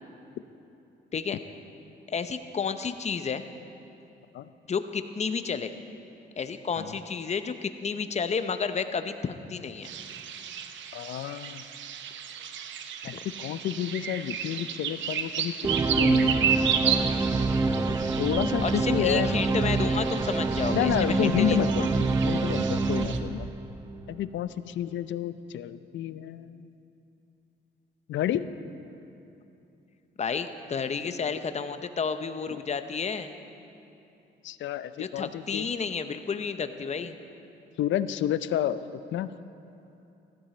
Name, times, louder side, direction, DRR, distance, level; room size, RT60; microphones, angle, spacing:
voice 1, 2.1-3.4 4.7-5.7 6.4-9.9 17.9-18.1 18.6-21.9 30.2-33.3 35.0-37.2, left 5 dB, 35° left, 9 dB, 0.7 m, -31 dB
sound 1, 9.8-23.2, right 8 dB, 70° right, 0.7 m, -33 dB
voice 2, 10.9-11.6 13.0-16.4 17.9-19.3 20.7-23.5 24.1-26.6 28.1-28.4 34.4-35.7 37.8-38.8 39.1-39.3, left 11 dB, 70° left, 14 dB, 0.5 m, -30 dB
sound 2, 15.6-24.1, right 3 dB, 15° right, 0.5 m, -26 dB
15.5 x 13.5 x 4.3 m, 2.8 s
cardioid pair, 90°, 20 cm